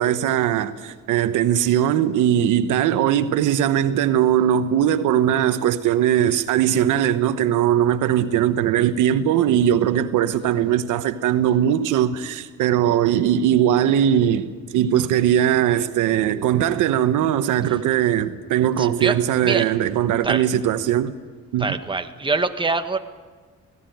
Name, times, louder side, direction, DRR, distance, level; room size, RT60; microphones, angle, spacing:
voice 1, 0.0-21.1 21.5-21.8, right 10 dB, 85° right, 1.0 m, -20 dB
voice 2, 18.8-19.2 19.4-19.7 20.2-20.4 21.6-23.0, right 3 dB, 15° right, 1.3 m, -24 dB
19.0 x 17.0 x 9.2 m
cardioid pair, 90°, 30 cm